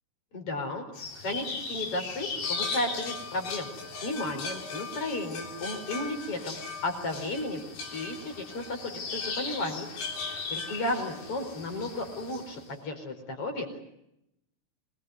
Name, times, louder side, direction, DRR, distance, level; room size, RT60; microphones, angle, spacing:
voice 1, 0.3-0.8 1.1-3.7 4.0-7.6 7.9-9.9 10.1-13.7, left 2 dB, 35° left, 6 dB, 5.1 m, -34 dB
sound 1, 0.9-12.6, left 4 dB, 75° left, 5.8 m, -37 dB
26.5 x 21.0 x 9.5 m, 0.83 s
omnidirectional pair, 4.6 m